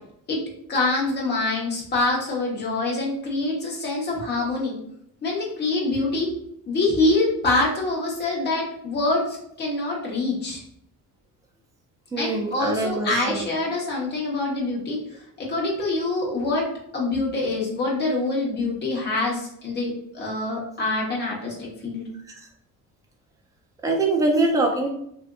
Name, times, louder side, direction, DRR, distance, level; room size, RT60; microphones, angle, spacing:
voice 1, 0.7-4.7 5.2-6.3 6.7-10.6 12.2-15.0 15.4-16.7 16.9-22.0, left 2 dB, 30° left, -3 dB, 0.9 m, -25 dB
voice 2, 12.1-13.4 22.3-22.5 23.8-24.9, right 2 dB, 10° right, 1 dB, 0.3 m, -23 dB
3.6 x 2.5 x 2.2 m, 0.73 s
cardioid pair, 170°, 34 cm